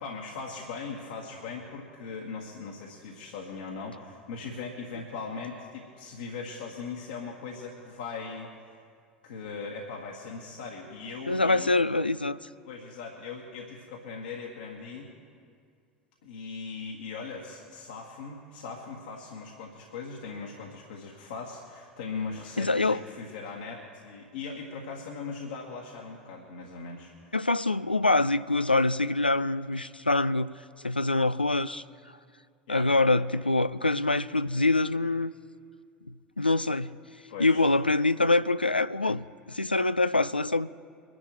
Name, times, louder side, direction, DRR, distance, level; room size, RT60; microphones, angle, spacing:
voice 1, 0.0-8.5 9.2-11.7 12.6-15.1 16.2-27.3 32.7-32.9 37.3-37.7, left 4 dB, 65° left, -1 dB, 1.8 m, -39 dB
voice 2, 11.3-12.4 22.6-23.0 27.3-30.5 30.8-31.8 32.7-35.3 36.1-37.0 37.4-40.7, left 2 dB, 90° left, 14 dB, 0.3 m, -25 dB
23.5 x 11.0 x 3.2 m, 2.2 s
figure-of-eight pair, 75°, 5 cm